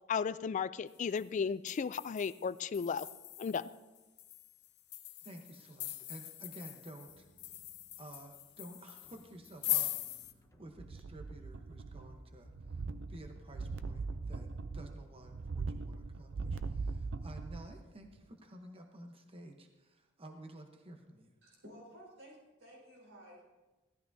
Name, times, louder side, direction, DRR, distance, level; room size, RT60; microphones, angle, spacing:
voice 1, 0.1-3.1 3.4-3.7, left 6 dB, 40° left, 16 dB, 0.3 m, -34 dB
sound 1, 0.9-1.2 1.7-10.3, left 12 dB, 60° left, 0.8 m, -41 dB
voice 2, 5.2-7.3 8.0-12.8 13.1-14.5 14.7-21.3, right 1 dB, 30° right, 4 dB, 1.0 m, -52 dB
sound 2, 7.0-18.3, equal, 15° left, 0.8 m, -61 dB
sound 3, 10.8-12.2 12.5-17.8 18.2-18.3, right 4 dB, 70° right, 0.5 m, -40 dB
voice 3, 21.4-23.4, equal, 85° right, -3 dB, 4.2 m, -54 dB
17.0 x 13.0 x 2.7 m, 1.1 s
head